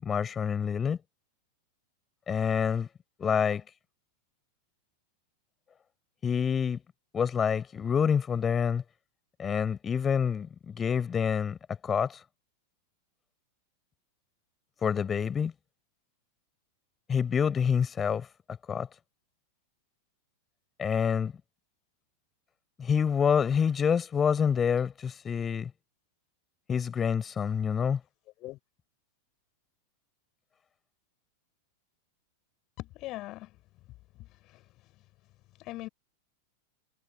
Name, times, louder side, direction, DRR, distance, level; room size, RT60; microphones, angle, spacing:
voice 1, 0.0-1.0 2.3-2.9 3.2-3.6 6.2-6.8 7.1-8.8 9.4-11.6 11.8-12.2 14.8-15.5 17.1-18.3 18.7-18.9 20.8-21.3 22.8-25.7 26.7-28.0, left 7 dB, 20° left, 5.4 m, -27 dB
voice 2, 32.8-33.6 34.2-34.6 35.6-35.9, left 18 dB, 40° left, 5.7 m, -41 dB
figure-of-eight pair, 90°, 0 cm